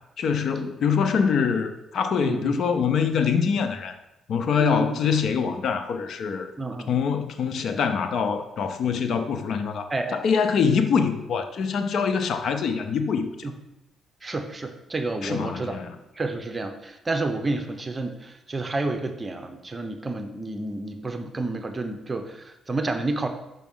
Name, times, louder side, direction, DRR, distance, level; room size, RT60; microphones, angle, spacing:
voice 1, 0.2-4.0 4.3-6.5 6.9-13.5 15.2-16.0, left 6 dB, 65° left, 8 dB, 0.7 m, -24 dB
voice 2, 2.2-2.6 4.6-4.9 6.6-6.9 9.9-10.2 13.4-13.5 14.2-15.8 16.2-23.3, right 2 dB, 25° right, 7 dB, 0.9 m, -30 dB
6.0 x 5.8 x 5.5 m, 0.91 s
cardioid pair, 90°, 0 cm